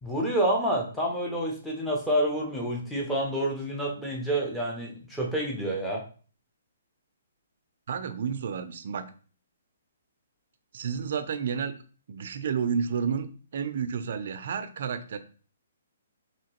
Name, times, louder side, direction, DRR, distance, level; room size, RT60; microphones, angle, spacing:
voice 1, 0.0-6.0, right 1 dB, ahead, -3 dB, 0.6 m, -28 dB
voice 2, 7.9-9.1 10.7-11.7 12.1-13.3 13.5-15.2, right 6 dB, 55° right, 9 dB, 0.4 m, -30 dB
3.0 x 2.8 x 2.9 m, 0.39 s
hypercardioid pair, 165°, 0 cm